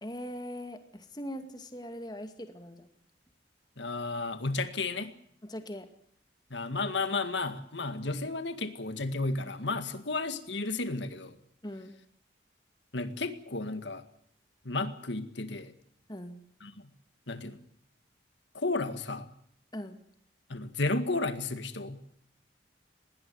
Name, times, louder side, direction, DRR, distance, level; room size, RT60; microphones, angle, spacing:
voice 1, 0.0-2.9 5.4-5.9 11.6-11.9 16.1-16.4 19.7-20.0, equal, 20° left, 7 dB, 2.2 m, -41 dB
voice 2, 3.8-5.1 6.5-11.4 12.9-14.0 14.7-15.7 16.6-16.8 17.3-17.6 18.5-19.3 20.5-22.0, left 3 dB, 75° left, 10 dB, 2.0 m, -33 dB
20.5 x 18.0 x 9.5 m, 0.66 s
head